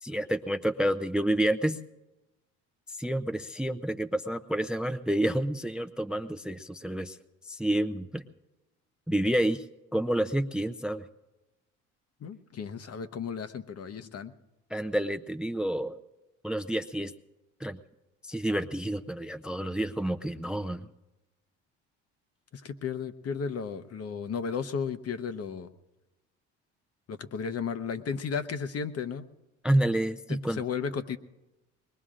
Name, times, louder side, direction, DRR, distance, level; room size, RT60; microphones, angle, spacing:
voice 1, 0.0-1.8 2.9-7.2 7.5-8.2 9.1-9.7 9.9-11.0 14.7-16.0 16.4-17.1 17.6-17.8 18.2-20.9 29.6-30.7, right 1 dB, 5° right, 9 dB, 0.5 m, -29 dB
voice 2, 12.2-14.3 22.5-25.7 27.1-29.3 30.3-31.2, left 6 dB, 45° left, 10 dB, 0.9 m, -34 dB
22.5 x 20.0 x 2.5 m, 1.0 s
supercardioid pair, 75°, 33 cm